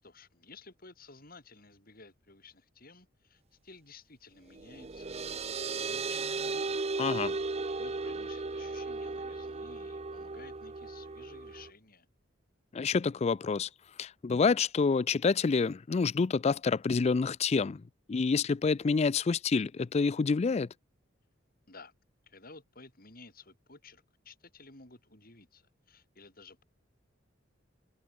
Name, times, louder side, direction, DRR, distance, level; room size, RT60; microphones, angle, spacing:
voice 1, 0.0-6.6 7.7-12.1 21.7-21.9 22.3-26.6, left 3 dB, 50° left, 6.6 m, -54 dB
sound 1, 4.5-11.7, right 3 dB, 35° right, 0.7 m, -36 dB
voice 2, 7.0-7.3 12.7-13.7 14.0-20.7, left 5 dB, 35° left, 0.3 m, -28 dB
head